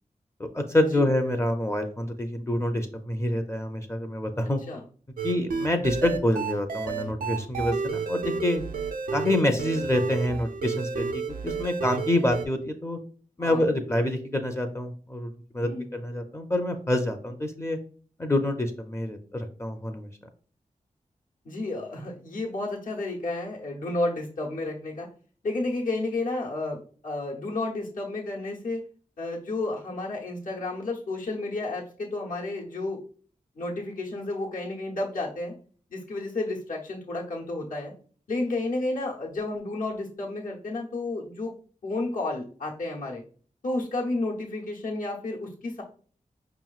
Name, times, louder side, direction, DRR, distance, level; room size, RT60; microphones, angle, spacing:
voice 1, 0.4-4.6 5.2-8.6 9.1-13.0 13.4-17.8 18.2-20.1, left 1 dB, 20° left, 6 dB, 0.4 m, -27 dB
sound 1, 5.2-12.5, right 5 dB, 85° right, 0.4 m, -31 dB
voice 2, 21.4-25.1 25.4-28.8 29.2-33.0 33.6-35.5 35.9-37.9 38.3-41.5 41.8-43.2 43.6-45.8, left 2 dB, 75° left, -3 dB, 0.9 m, -31 dB
5.3 x 2.9 x 2.4 m, 0.44 s
wide cardioid pair, 85°, 14 cm